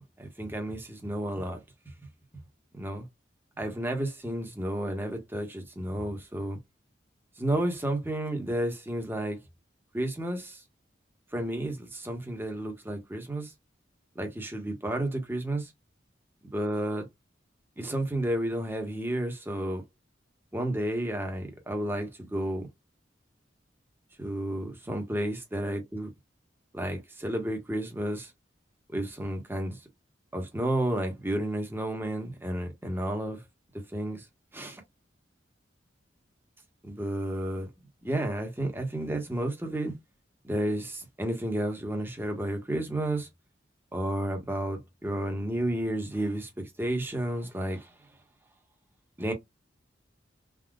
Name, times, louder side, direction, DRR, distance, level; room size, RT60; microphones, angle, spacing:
voice 1, 0.0-1.6 2.7-3.1 3.6-6.6 7.4-9.4 9.9-10.6 11.3-13.5 14.1-15.7 16.5-17.1 17.8-19.8 20.5-22.7 24.2-26.1 26.7-28.3 28.9-29.8 30.3-33.4 33.7-34.2 34.5-34.8 36.8-37.7 38.0-39.9 40.4-43.3 43.9-47.9 49.2-49.3, right 1 dB, 10° right, 1.0 m, -31 dB
3.6 x 2.3 x 2.3 m
head